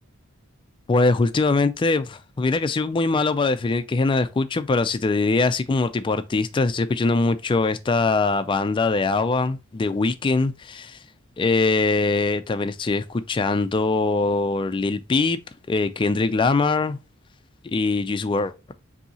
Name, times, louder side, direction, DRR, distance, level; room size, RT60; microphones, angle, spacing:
voice 1, 0.9-11.0 11.4-15.4 15.7-17.0 17.7-18.5, left 3 dB, 25° left, 0.3 m, -22 dB
5.4 x 2.7 x 2.8 m
head